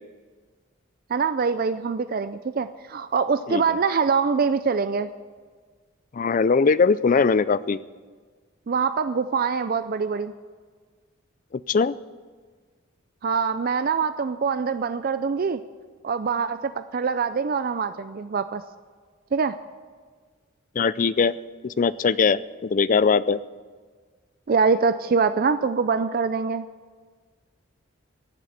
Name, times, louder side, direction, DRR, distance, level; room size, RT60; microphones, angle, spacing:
voice 1, 1.1-5.1 8.7-10.3 13.2-15.6 16.0-18.6 19.3-19.6 24.5-26.7, right 5 dB, 45° right, 12 dB, 0.4 m, -24 dB
voice 2, 6.1-7.8 11.7-11.9 20.8-21.3 21.6-23.4, left 5 dB, 40° left, 18 dB, 0.4 m, -20 dB
16.5 x 7.6 x 8.7 m, 1.5 s
head